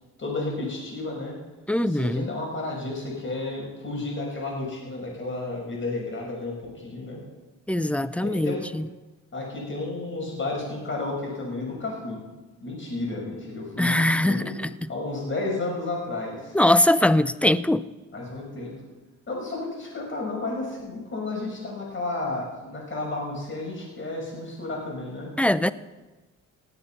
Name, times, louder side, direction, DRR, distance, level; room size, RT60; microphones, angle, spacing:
voice 1, 0.2-1.3 1.8-7.2 8.2-8.6 9.3-12.2 12.6-14.6 14.9-16.6 18.1-18.7 19.3-25.3, left 2 dB, 40° left, 6.0 m, -32 dB
voice 2, 1.7-2.3 7.7-8.9 13.8-14.9 16.5-17.8 25.4-25.7, left 1 dB, 5° left, 0.4 m, -22 dB
18.0 x 8.1 x 5.9 m
cardioid pair, 90°, 30 cm